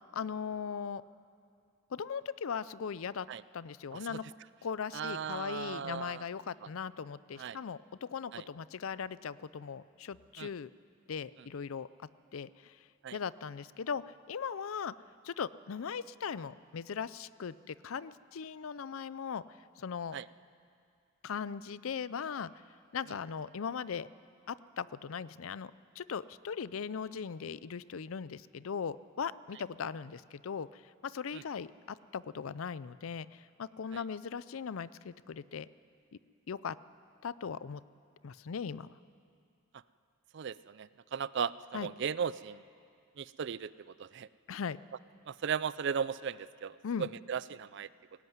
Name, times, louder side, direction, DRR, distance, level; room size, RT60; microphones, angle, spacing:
voice 1, 0.1-1.0 1.9-3.3 3.5-4.2 4.6-10.7 11.1-11.9 12.3-14.9 15.2-20.2 21.2-22.6 22.9-24.1 24.5-35.7 36.1-36.2 36.5-36.8 37.2-37.8 38.2-39.0 41.7-41.9 44.5-44.8 46.8-47.1, left 6 dB, 75° left, 17 dB, 0.5 m, -39 dB
voice 2, 4.9-6.2 7.4-7.6 8.3-8.4 10.4-10.5 13.0-13.2 20.1-20.3 33.9-34.0 40.3-42.6 43.2-44.3 45.3-47.9, right 7 dB, 55° right, 18 dB, 0.4 m, -36 dB
18.0 x 17.0 x 9.4 m, 2.4 s
head